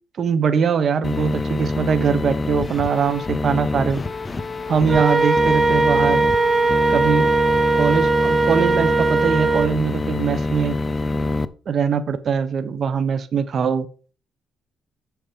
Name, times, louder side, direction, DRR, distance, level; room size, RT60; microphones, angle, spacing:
voice 1, 0.2-4.0 4.7-6.3 6.9-7.3 7.8-10.7 11.7-13.9, right 6 dB, 50° right, 11 dB, 1.1 m, -22 dB
sound 1, 1.0-11.4, left 2 dB, 25° left, 0.7 m, -25 dB
Wind instrument woodwind instrument, 4.9-9.7, right 3 dB, 25° right, 1.1 m, -19 dB
7.3 x 7.3 x 5.2 m, 0.37 s
cardioid pair, 100°, 0 cm